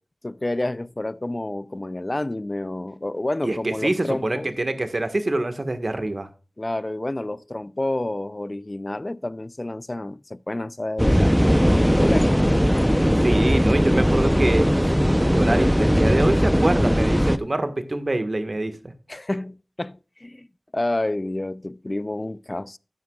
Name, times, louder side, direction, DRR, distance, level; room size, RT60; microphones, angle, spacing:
voice 1, 0.2-4.5 6.6-12.4 19.1-20.5 20.7-22.8, left 1 dB, 40° left, 0.4 m, -29 dB
voice 2, 3.4-6.3 13.2-18.9, right 2 dB, 60° right, 1.5 m, -25 dB
sound 1, 11.0-17.4, equal, ahead, 0.7 m, -19 dB
12.5 x 9.4 x 2.4 m
wide cardioid pair, 45°, 0 cm